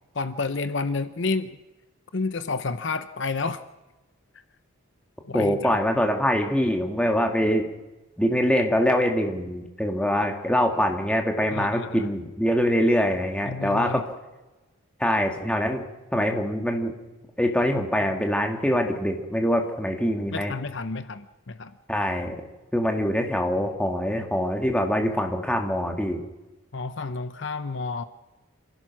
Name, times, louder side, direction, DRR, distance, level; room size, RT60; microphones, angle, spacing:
voice 1, 0.1-1.6 2.1-3.6 5.3-5.7 11.5-12.1 13.5-14.0 20.3-21.7 26.7-28.0, left 4 dB, 55° left, 11 dB, 0.7 m, -30 dB
voice 2, 5.3-7.7 8.2-14.0 15.0-15.9 16.1-16.9 17.4-20.5 21.9-22.4 22.7-26.2, equal, 5° left, 3 dB, 2.1 m, -24 dB
27.0 x 16.0 x 6.1 m, 1.1 s
head